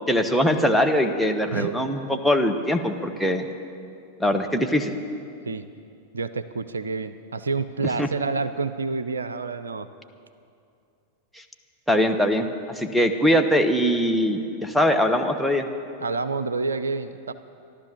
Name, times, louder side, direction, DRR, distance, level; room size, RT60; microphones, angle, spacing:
voice 1, 0.1-3.5 4.2-4.9 8.0-8.1 11.3-11.4 11.9-15.7, equal, ahead, 6 dB, 1.0 m, -22 dB
voice 2, 6.1-9.9 16.0-17.3, right 4 dB, 70° right, 11 dB, 0.5 m, -28 dB
14.0 x 12.0 x 7.2 m, 2.5 s
figure-of-eight pair, 90°, 0 cm